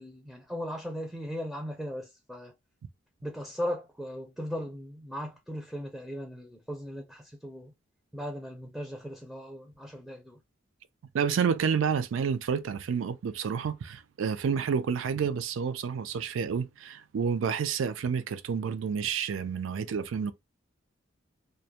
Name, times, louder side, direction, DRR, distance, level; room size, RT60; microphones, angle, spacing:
voice 1, 0.0-2.5 3.2-7.7 8.1-10.4, equal, ahead, 0.4 m, -38 dB
voice 2, 11.1-20.3, right 6 dB, 85° right, 0.4 m, -29 dB
2.2 x 2.1 x 2.8 m
head